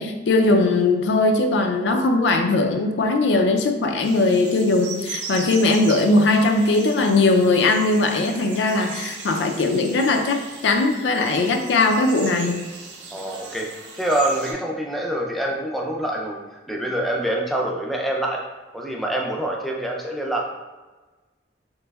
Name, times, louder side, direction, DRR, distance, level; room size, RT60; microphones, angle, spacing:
voice 1, 0.0-10.4 10.6-12.6, left 2 dB, 80° left, 4 dB, 0.4 m, -19 dB
sound 1, 4.0-14.5, right 4 dB, 80° right, 0.6 m, -38 dB
voice 2, 13.1-13.7 13.9-16.4 16.7-18.4 18.7-20.5, right 1 dB, ahead, -1 dB, 0.3 m, -25 dB
3.2 x 3.0 x 2.2 m, 1.2 s
head